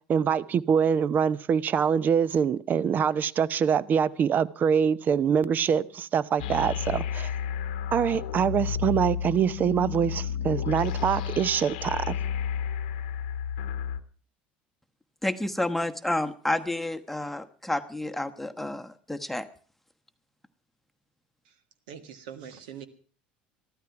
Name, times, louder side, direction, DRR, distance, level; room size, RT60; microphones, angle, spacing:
voice 1, 0.1-7.3 7.9-12.1, right 7 dB, 40° right, 0.7 m, -24 dB
sound 1, 6.4-14.0, left 8 dB, 80° left, 1.0 m, -31 dB
voice 2, 15.2-19.5, left 1 dB, 5° left, 1.1 m, -30 dB
voice 3, 21.9-22.9, right 8 dB, 80° right, 1.7 m, -42 dB
14.5 x 13.0 x 5.8 m
hypercardioid pair, 80°, 5 cm